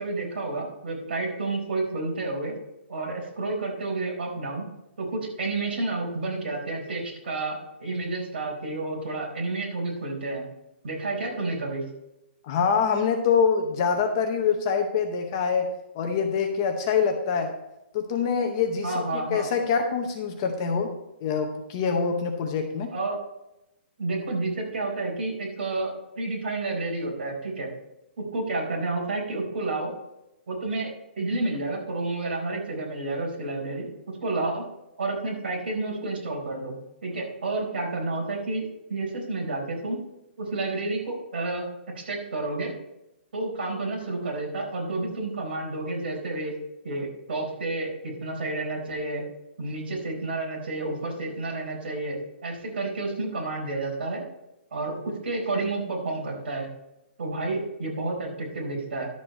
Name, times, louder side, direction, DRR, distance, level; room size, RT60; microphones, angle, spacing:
voice 1, 0.0-2.5 2.9-4.7 5.0-10.4 10.8-11.8 18.8-19.5 22.9-23.2 24.0-27.7 28.3-29.9 30.5-33.9 34.2-34.6 35.0-36.7 37.0-38.6 38.9-40.0 40.4-41.7 41.9-42.7 43.3-46.6 46.8-49.2 49.6-54.2 54.7-56.7 57.2-59.1, right 2 dB, 55° right, -1 dB, 4.2 m, -30 dB
voice 2, 12.4-17.6 17.9-22.9, left 6 dB, 20° left, 4 dB, 0.7 m, -25 dB
11.5 x 7.4 x 4.3 m, 0.89 s
hypercardioid pair, 180°, 6 cm